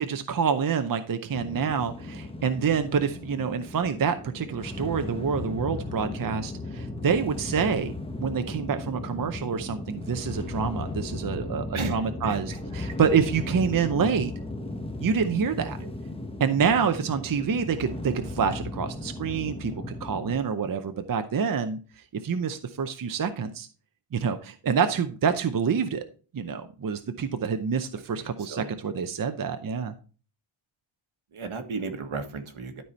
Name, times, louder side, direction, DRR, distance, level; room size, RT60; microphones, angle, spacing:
voice 1, 0.1-7.9 8.2-14.3 15.0-15.8 16.4-19.7 20.0-21.8 22.2-23.7 24.1-26.0 26.3-29.9, right 6 dB, 40° right, 8 dB, 0.7 m, -27 dB
sound 1, 1.3-20.4, left 2 dB, 10° left, 0.8 m, -36 dB
voice 2, 11.7-12.9 15.8-15.9 28.1-28.7 31.3-32.8, right 4 dB, 75° right, 5 dB, 1.6 m, -35 dB
12.5 x 4.2 x 4.3 m, 0.37 s
wide cardioid pair, 150°, 50 cm